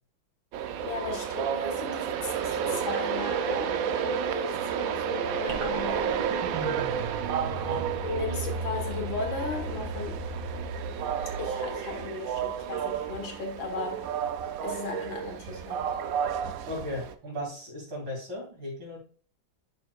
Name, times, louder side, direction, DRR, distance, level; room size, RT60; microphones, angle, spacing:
Train, 0.5-17.1, right 8 dB, 90° right, 0.7 m, -31 dB
voice 1, 0.8-6.2 8.0-10.2 11.4-14.1 14.6-15.9, left 4 dB, 75° left, 2.3 m, -36 dB
sound 1, 5.5-12.0, right 2 dB, 55° right, 2.0 m, -37 dB
voice 2, 7.4-7.9 16.7-19.0, left 1 dB, 75° right, 3.6 m, -37 dB
10.5 x 4.4 x 2.4 m
omnidirectional pair, 2.1 m